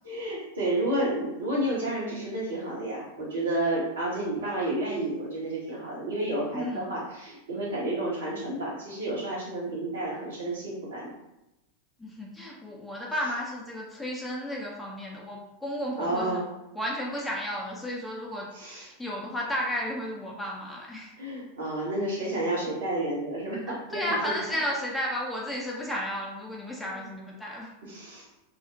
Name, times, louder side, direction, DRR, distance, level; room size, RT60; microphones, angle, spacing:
voice 1, 0.0-11.1 16.0-16.4 18.5-18.9 21.2-24.4 26.9-27.0 27.8-28.5, right 1 dB, 65° right, -6 dB, 0.9 m, -31 dB
voice 2, 6.5-6.9 12.0-16.4 16.8-21.1 23.7-27.7, equal, 5° left, -3 dB, 0.4 m, -33 dB
2.4 x 2.0 x 2.5 m, 0.94 s
figure-of-eight pair, 90°, 0 cm